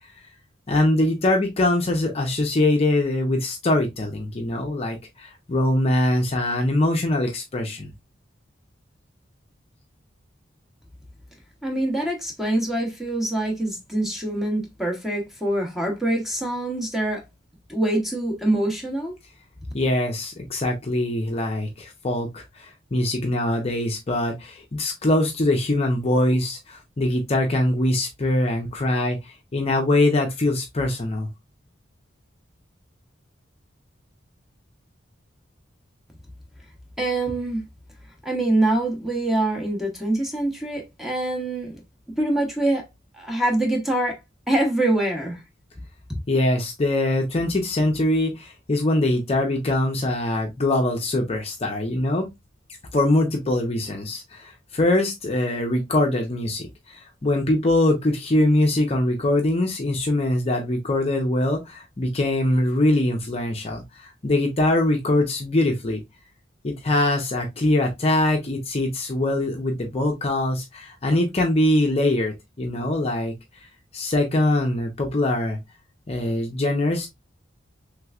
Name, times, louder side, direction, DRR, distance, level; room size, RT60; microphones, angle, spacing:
voice 1, 0.7-7.9 19.7-31.3 46.3-52.3 52.9-66.0 66.6-73.3 73.9-75.6 76.1-77.1, left 1 dB, 30° left, 0.5 m, -23 dB
voice 2, 11.6-17.2 17.7-19.1 37.0-37.7 38.2-41.8 42.2-42.9 43.1-44.2 44.5-45.4 46.1-46.2, right 1 dB, ahead, 0.8 m, -24 dB
3.2 x 3.0 x 2.3 m
head